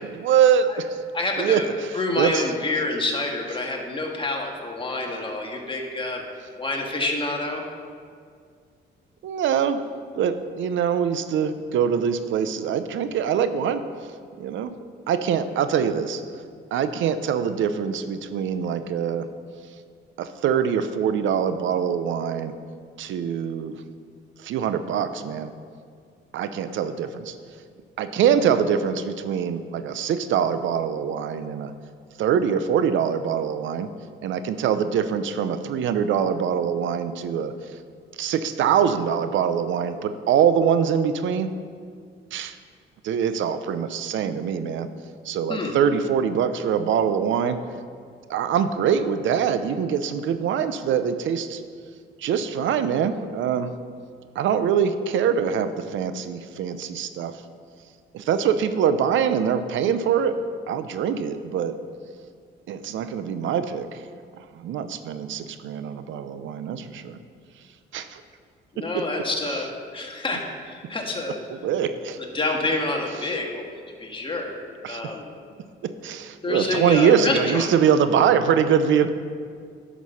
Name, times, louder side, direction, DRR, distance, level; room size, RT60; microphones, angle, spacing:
voice 1, 0.1-1.0 1.4-2.4 9.2-9.8 10.2-13.9 14.4-14.7 15.1-16.4 16.7-19.3 20.2-22.5 23.0-23.8 24.4-25.5 26.3-27.4 28.0-31.7 32.2-33.9 34.2-37.8 38.2-41.5 42.3-42.6 43.0-44.9 45.2-47.6 48.3-51.6 52.2-53.8 54.3-57.4 58.1-61.8 62.7-64.0 64.4-67.2 67.9-68.2 68.8-69.0 69.4-69.6 71.5-72.2 73.2-73.3 74.8-75.0 75.8-79.1, right 7 dB, 75° right, 11 dB, 0.6 m, -24 dB
voice 2, 1.1-1.7 1.9-6.2 6.6-7.6 45.5-45.7 68.7-71.4 72.2-73.7 74.0-74.5 74.9-75.3 76.4-77.7, left 2 dB, 25° left, 0 dB, 1.8 m, -27 dB
11.0 x 6.2 x 5.6 m, 2.1 s
cardioid pair, 90°, 20 cm